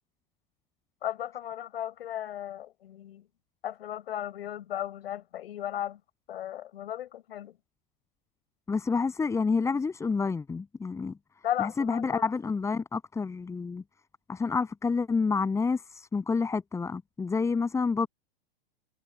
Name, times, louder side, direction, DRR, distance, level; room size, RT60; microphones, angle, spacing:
voice 1, 1.0-3.3 3.6-6.0 6.3-7.6 11.4-12.2, left 11 dB, 80° left, 7.1 m, -35 dB
voice 2, 8.7-11.1 11.6-13.8 14.3-18.1, left 4 dB, 10° left, 7.6 m, -28 dB
supercardioid pair, 160°, 30 cm